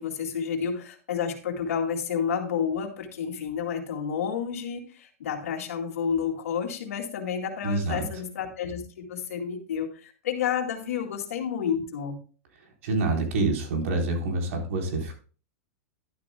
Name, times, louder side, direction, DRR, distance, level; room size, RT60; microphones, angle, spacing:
voice 1, 0.0-12.2, left 7 dB, 85° left, 1 dB, 2.3 m, -30 dB
voice 2, 7.6-8.0 12.8-15.1, right 2 dB, 70° right, 2 dB, 4.0 m, -27 dB
12.0 x 12.0 x 2.2 m, 0.37 s
supercardioid pair, 140°, 8 cm